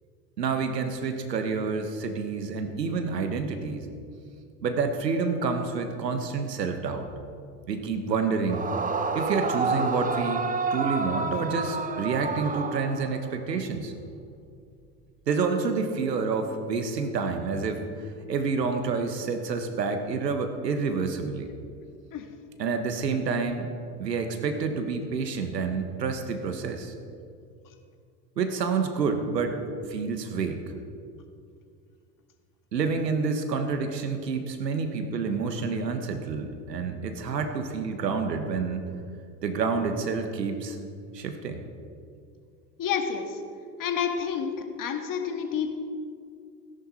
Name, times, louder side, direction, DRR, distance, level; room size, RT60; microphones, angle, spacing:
voice 1, 0.4-3.9 4.6-7.1 7.7-8.7 9.1-10.4 10.7-13.9 15.3-21.5 22.6-23.7 24.0-26.9 28.4-29.6 29.9-30.6 32.7-38.9 39.4-40.8 41.1-41.6, right 5 dB, 85° right, 7 dB, 1.5 m, -28 dB
Yell / Screaming, 8.5-13.4, right 4 dB, 15° right, 0.9 m, -29 dB
voice 2, 42.8-43.4 43.8-45.7, left 7 dB, 40° left, 5 dB, 1.9 m, -29 dB
17.5 x 10.5 x 4.3 m, 2.4 s
hypercardioid pair, 75°, 48 cm